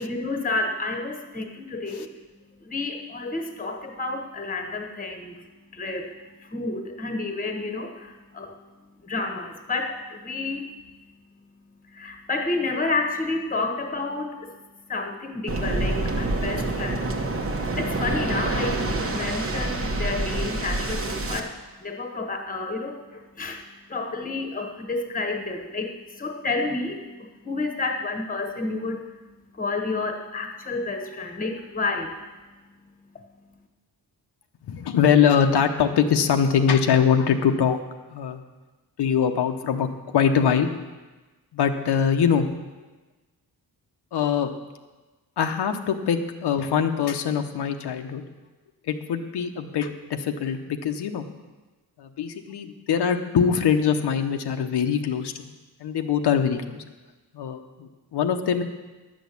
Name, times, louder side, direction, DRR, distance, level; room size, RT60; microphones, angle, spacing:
voice 1, 0.0-2.1 2.6-5.4 5.7-6.1 6.4-8.6 9.0-10.7 11.9-14.5 14.9-17.0 17.8-21.5 21.8-23.6 23.9-29.1 29.5-32.2, left 3 dB, 20° left, 4 dB, 1.2 m, -30 dB
Waves surf, 15.5-21.4, right 2 dB, 35° right, 1.0 m, -27 dB
voice 2, 34.7-37.8 38.1-38.4 39.0-39.9 40.1-40.8 41.5-42.5 44.1-44.5 45.4-48.2 48.8-51.2 52.0-55.3 55.8-56.8 57.3-58.6, left 7 dB, 85° left, 5 dB, 0.9 m, -23 dB
11.0 x 6.3 x 8.4 m, 1.2 s
wide cardioid pair, 165°, 39 cm